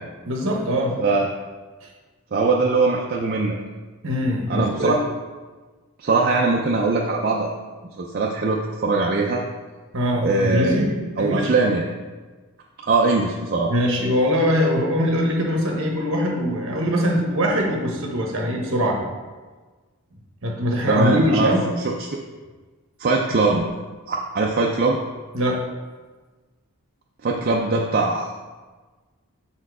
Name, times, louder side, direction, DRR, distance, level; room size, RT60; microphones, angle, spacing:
voice 1, 0.2-1.0 1.8-1.9 4.0-4.9 9.9-10.9 11.2-11.5 13.7-19.1 20.4-21.6 25.3-25.6, equal, 60° right, 0 dB, 1.1 m, -22 dB
voice 2, 1.0-1.3 2.3-3.6 4.5-5.0 6.0-7.5 8.0-9.4 10.2-10.8 11.2-11.8 12.8-13.7 20.8-21.5 21.8-22.1 23.0-23.7 24.1-25.0 27.2-28.3, right 3 dB, 40° right, -1 dB, 0.4 m, -21 dB
5.5 x 4.4 x 4.7 m, 1.3 s
head